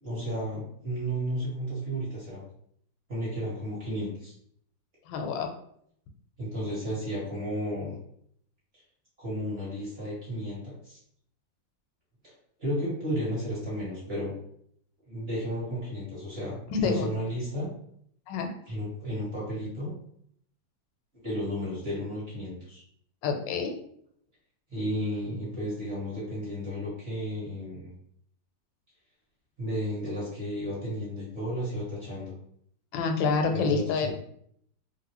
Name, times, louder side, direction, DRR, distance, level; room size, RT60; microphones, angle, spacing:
voice 1, 0.0-2.4 3.1-4.3 6.4-8.0 9.2-11.0 12.2-12.3 12.6-14.3 15.1-17.7 18.7-19.9 21.2-22.8 24.7-27.9 29.6-32.3 33.5-34.1, equal, 40° right, -7 dB, 1.2 m, -33 dB
voice 2, 5.1-5.5 16.7-17.1 18.3-18.5 23.2-23.7 32.9-34.1, left 4 dB, 80° left, 4 dB, 1.3 m, -27 dB
3.0 x 2.6 x 2.9 m, 0.67 s
omnidirectional pair, 2.0 m